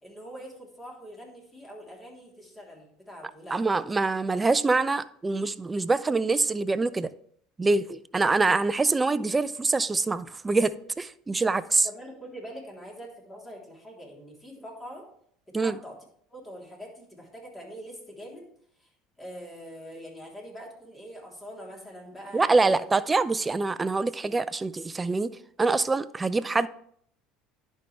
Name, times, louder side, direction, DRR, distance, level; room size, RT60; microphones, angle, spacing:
voice 1, 0.0-3.6 11.8-15.0 15.5-16.0 16.3-18.4 18.8-18.9 19.2-22.7, equal, 20° left, 3.2 m, -43 dB
voice 2, 3.5-7.1 7.6-11.9 15.5-15.8 22.3-26.7, right 3 dB, 20° right, 0.4 m, -25 dB
11.0 x 5.4 x 3.2 m
hypercardioid pair, 80°, 0 cm